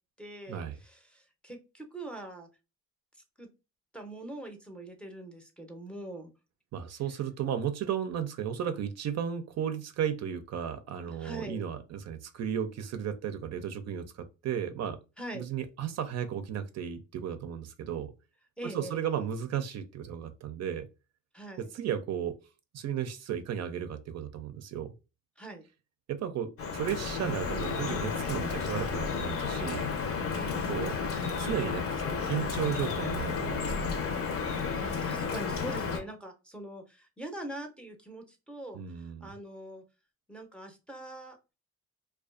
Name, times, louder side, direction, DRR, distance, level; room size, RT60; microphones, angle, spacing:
voice 1, 0.2-2.5 3.4-3.5 3.9-6.3 6.9-7.0 11.1-11.6 15.2-15.5 18.6-19.2 21.3-21.7 25.4-25.7 30.3-31.5 34.8-39.8 40.3-41.4, right 1 dB, 5° left, 0.6 m, -43 dB
voice 2, 6.7-15.0 15.3-18.1 18.7-20.9 21.6-22.4 22.7-24.9 26.1-29.9 30.7-31.0 31.2-33.9 38.7-39.3, right 9 dB, 60° right, 0.5 m, -34 dB
Drip, 26.6-36.0, left 5 dB, 50° left, 0.6 m, -32 dB
2.4 x 2.3 x 2.4 m
cardioid pair, 90°, 30 cm